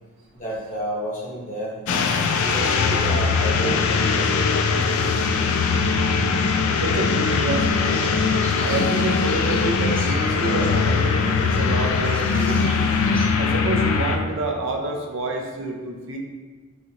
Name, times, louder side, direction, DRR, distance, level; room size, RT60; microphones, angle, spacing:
voice 1, 0.3-1.8 2.5-3.8 4.1-4.4, right 1 dB, 35° left, -5 dB, 0.8 m, -30 dB
sound 1, 1.9-14.2, left 4 dB, 80° left, 0.3 m, -21 dB
voice 2, 6.4-8.1 8.6-12.7 13.4-16.2, right 2 dB, 65° right, 1 dB, 0.4 m, -28 dB
sound 2, 7.3-13.3, equal, 5° left, 0.5 m, -40 dB
4.0 x 2.4 x 2.8 m, 1.4 s
head